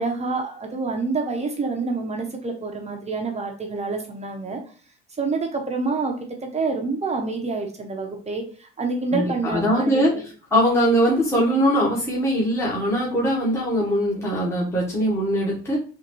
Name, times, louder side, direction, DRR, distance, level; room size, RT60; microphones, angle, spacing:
voice 1, 0.0-4.6 5.2-10.2, right 3 dB, 20° right, 2 dB, 0.7 m, -27 dB
voice 2, 9.1-10.1 10.5-15.8, equal, 10° left, -5 dB, 1.1 m, -21 dB
3.8 x 2.5 x 3.0 m, 0.40 s
supercardioid pair, 100°, 31 cm